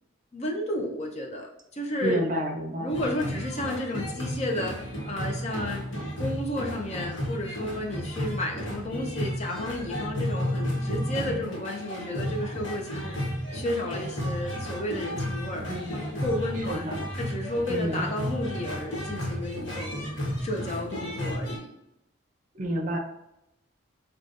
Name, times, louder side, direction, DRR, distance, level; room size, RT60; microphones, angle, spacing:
voice 1, 0.3-2.2 2.8-5.9 6.2-16.8 17.2-20.1 20.4-21.7, left 1 dB, 35° left, 0 dB, 0.6 m, -32 dB
voice 2, 2.0-2.9 15.7-15.9 16.7-17.0 17.7-18.1 22.5-23.0, equal, 40° right, 2 dB, 0.6 m, -29 dB
sound 1, 2.9-21.6, equal, 70° left, 1.1 m, -33 dB
4.9 x 2.3 x 2.5 m, 0.83 s
head